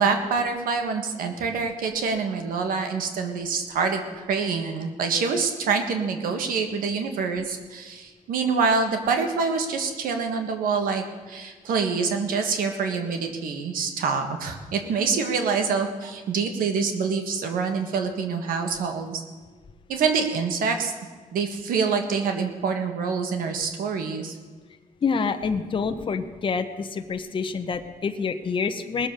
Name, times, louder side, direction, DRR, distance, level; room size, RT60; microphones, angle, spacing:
voice 1, 0.0-19.2 19.9-20.9 21.3-24.4, right 5 dB, 90° right, 5 dB, 1.6 m, -26 dB
voice 2, 25.0-29.1, left 5 dB, 35° left, 7 dB, 0.9 m, -27 dB
19.5 x 7.2 x 6.6 m, 1.4 s
cardioid pair, 120°, 14 cm